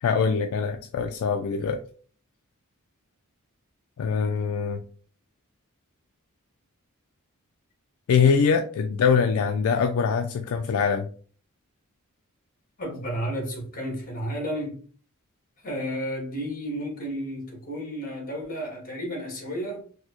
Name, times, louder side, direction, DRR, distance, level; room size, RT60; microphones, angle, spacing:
voice 1, 0.0-1.8 4.0-4.8 8.1-11.1, left 6 dB, 70° left, 0.3 m, -23 dB
voice 2, 12.8-14.8 15.6-19.8, equal, 40° left, 1.5 m, -32 dB
4.3 x 2.1 x 2.9 m
head